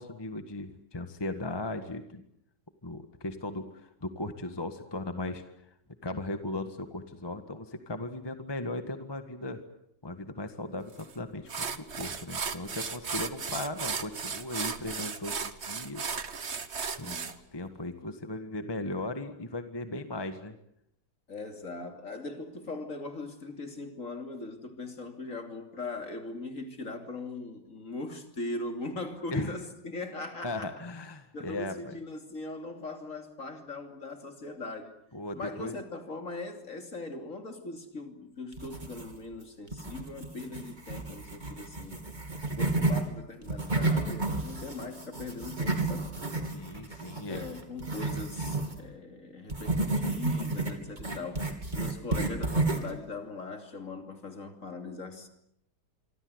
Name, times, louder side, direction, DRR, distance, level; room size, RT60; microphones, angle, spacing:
voice 1, 0.0-2.2 2.8-5.4 6.0-9.6 10.0-16.1 17.0-20.6 29.3-29.6 30.4-31.9 35.1-35.7 46.5-47.4, left 2 dB, 15° left, 1.6 m, -37 dB
sound 1, 11.0-11.1 11.5-17.3, right 5 dB, 40° right, 1.5 m, -35 dB
voice 2, 17.0-17.4 21.3-30.7 31.3-34.9 35.3-42.0 42.6-46.1 47.3-55.3, left 3 dB, 45° left, 3.3 m, -40 dB
sound 2, 38.5-39.3 39.7-43.0 43.4-48.8 49.5-53.0, right 2 dB, 25° right, 3.4 m, -31 dB
26.5 x 24.5 x 8.1 m
omnidirectional pair, 1.9 m